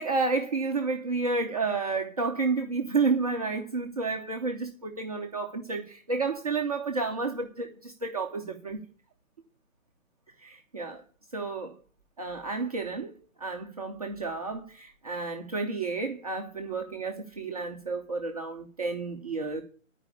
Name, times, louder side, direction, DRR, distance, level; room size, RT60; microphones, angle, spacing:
voice 1, 0.0-8.8 10.4-11.0 11.3-11.8 12.2-13.1 13.4-19.6, right 4 dB, 30° right, 0.7 m, -31 dB
11.5 x 5.0 x 8.4 m
figure-of-eight pair, 155°, 41 cm